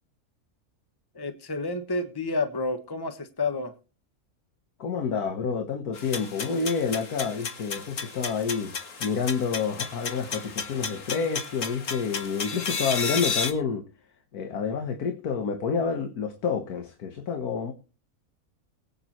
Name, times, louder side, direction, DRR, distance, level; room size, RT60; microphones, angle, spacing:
voice 1, 1.1-3.7, left 3 dB, 15° left, 8 dB, 1.3 m, -30 dB
voice 2, 4.8-8.7 9.0-13.8 14.3-17.7, left 5 dB, 80° left, 5 dB, 1.8 m, -28 dB
sound 1, 5.9-13.5, left 5 dB, 60° left, 2.0 m, -33 dB
22.0 x 8.8 x 3.1 m, 0.33 s
omnidirectional pair, 1.6 m